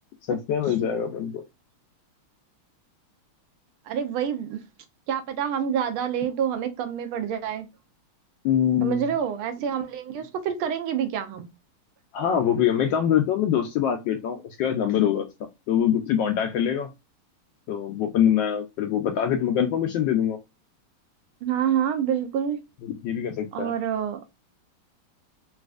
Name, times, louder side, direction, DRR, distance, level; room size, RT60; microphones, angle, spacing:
voice 1, 0.3-1.4 8.4-9.1 12.1-16.9 17.7-20.4 22.8-23.7, left 9 dB, 75° left, 1.1 m, -24 dB
voice 2, 3.9-4.6 5.1-7.7 8.8-11.5 21.4-22.6 23.5-24.2, right 8 dB, 75° right, 1.4 m, -27 dB
4.1 x 2.4 x 2.3 m
omnidirectional pair, 2.4 m